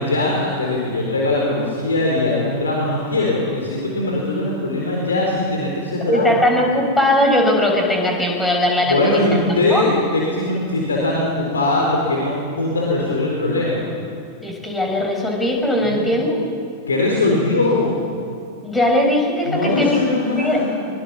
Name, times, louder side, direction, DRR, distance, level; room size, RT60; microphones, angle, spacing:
voice 1, 0.0-6.3 8.8-13.8 15.8-16.0 16.9-18.0 19.5-20.7, left 2 dB, 75° left, -2 dB, 4.0 m, -20 dB
voice 2, 6.1-9.2 9.7-9.8 14.4-16.4 18.6-20.0 20.4-20.7, left 1 dB, 10° left, 1 dB, 5.3 m, -19 dB
23.0 x 22.5 x 6.2 m, 2.4 s
figure-of-eight pair, 90°, 0 cm